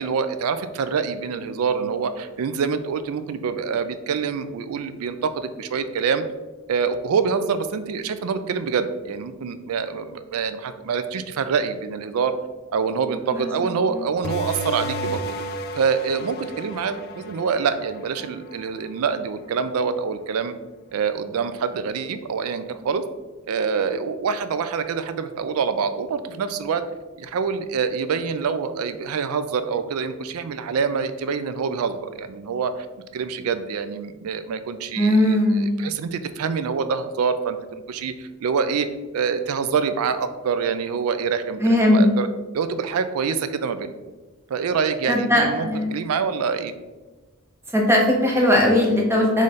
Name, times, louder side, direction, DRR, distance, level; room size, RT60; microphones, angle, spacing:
voice 1, 0.0-6.2 6.7-12.4 12.7-15.3 15.7-20.5 20.9-23.0 23.5-26.8 27.2-32.7 33.1-38.9 39.1-42.3 42.5-43.9 44.5-46.7, right 6 dB, 80° right, 11 dB, 0.4 m, -26 dB
voice 2, 13.3-14.0 35.0-35.8 41.6-42.2 45.1-46.0 47.7-49.4, left 1 dB, 10° right, 0 dB, 0.5 m, -19 dB
sound 1, 14.2-19.4, equal, 45° left, 0.3 m, -33 dB
3.7 x 3.2 x 4.0 m, 1.2 s
head